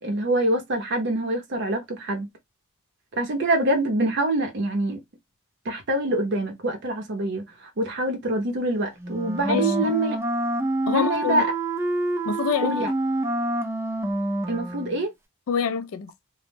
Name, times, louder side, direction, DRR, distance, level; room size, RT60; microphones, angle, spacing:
voice 1, 0.0-2.3 3.2-5.0 5.7-7.5 7.8-10.2 10.9-11.5 12.6-12.9 14.5-15.1, right 1 dB, 55° right, 0.6 m, -25 dB
Wind instrument woodwind instrument, 9.0-15.1, right 1 dB, 10° right, 0.3 m, -27 dB
voice 2, 9.5-9.9 10.9-11.5 12.3-12.8 15.5-16.1, left 6 dB, 70° left, 0.3 m, -26 dB
2.0 x 2.0 x 3.1 m
head